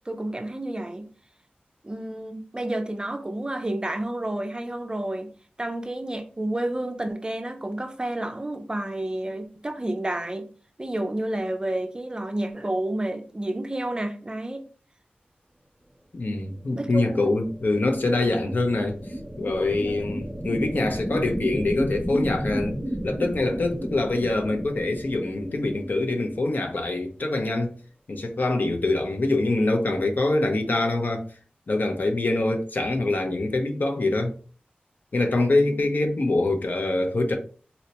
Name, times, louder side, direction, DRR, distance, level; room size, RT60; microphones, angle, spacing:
voice 1, 0.1-1.1 1.8-5.3 5.6-10.5 10.8-14.6 16.8-17.3 19.8-20.0 35.5-35.8, right 1 dB, 25° right, 0.4 m, -30 dB
voice 2, 16.1-19.0 19.4-22.8 23.0-27.8 28.1-31.3 31.7-34.4 35.1-37.4, left 2 dB, 60° left, 0.6 m, -24 dB
sound 1, 17.2-26.7, equal, 5° left, 1.1 m, -33 dB
4.1 x 2.1 x 2.8 m
wide cardioid pair, 70°, 3 cm